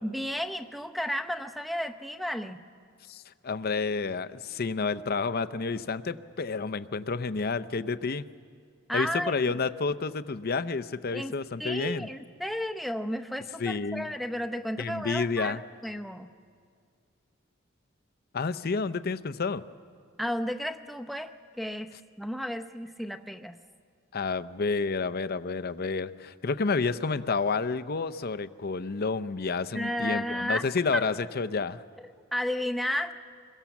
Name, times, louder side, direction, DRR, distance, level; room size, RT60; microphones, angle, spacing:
voice 1, 0.0-2.6 8.9-9.6 11.1-11.3 11.6-16.3 20.2-23.6 29.7-30.7 30.9-31.1 32.0-33.1, equal, ahead, 8 dB, 0.7 m, -33 dB
voice 2, 3.1-8.3 8.9-12.1 13.6-14.1 14.8-15.6 18.3-19.6 24.1-31.8, left 4 dB, 45° left, 13 dB, 0.6 m, -30 dB
26.0 x 22.0 x 7.2 m, 2.2 s
head